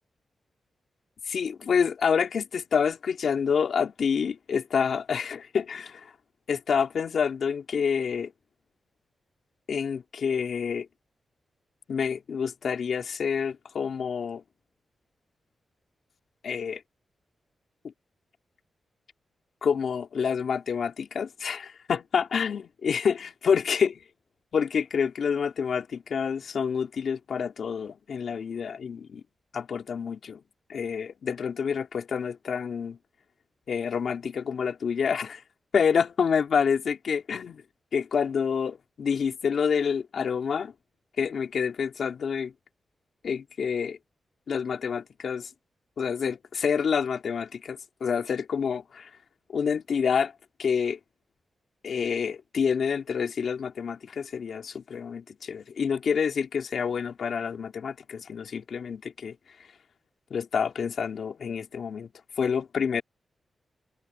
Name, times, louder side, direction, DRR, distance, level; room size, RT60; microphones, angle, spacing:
voice 1, 1.3-6.1 6.5-8.3 9.7-10.9 11.9-14.4 16.4-16.8 17.8-17.9 19.6-24.0 24.5-29.2 29.5-30.4 30.7-33.0 33.7-35.4 35.7-37.6 37.9-40.7 41.2-42.5 43.2-44.0 44.5-45.5 46.0-49.1 49.5-50.3 50.6-51.0 51.8-59.3 60.3-62.1 62.4-63.0, left 6 dB, 65° left, 3.2 m, -28 dB
wide cardioid pair, 155°, 0 cm